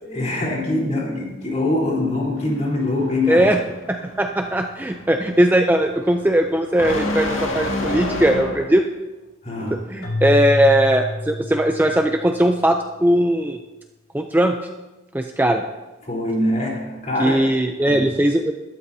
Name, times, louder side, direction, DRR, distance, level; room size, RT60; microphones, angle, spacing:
voice 1, 0.0-3.5 9.4-9.8 16.0-17.5 17.8-18.1, left 2 dB, 35° left, -3 dB, 3.7 m, -23 dB
sound 1, 2.4-8.8, left 2 dB, 75° left, 2.1 m, -29 dB
voice 2, 3.3-3.6 3.9-8.8 9.9-13.6 14.1-14.6 15.1-15.6 17.2-18.5, right 1 dB, 10° right, 4 dB, 0.5 m, -19 dB
Keyboard (musical), 10.0-12.3, left 2 dB, 50° left, 2.3 m, -27 dB
21.0 x 12.5 x 2.7 m, 1.1 s
head